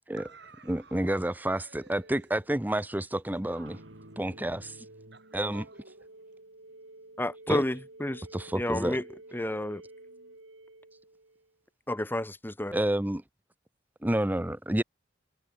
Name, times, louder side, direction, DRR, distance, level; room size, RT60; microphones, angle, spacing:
voice 1, 0.2-4.5 4.8-6.4, right 4 dB, 60° right, 7.5 m, -55 dB
voice 2, 0.7-3.8 4.2-4.8 5.3-5.6 7.5-7.6 8.3-9.0 12.7-13.2 14.0-14.8, right 1 dB, 10° right, 0.8 m, -29 dB
sound 1, 3.6-11.6, right 2 dB, 90° right, 4.3 m, -51 dB
voice 3, 7.2-8.2 8.5-9.0 9.3-9.8 11.9-12.8, left 1 dB, 10° left, 1.0 m, -30 dB
head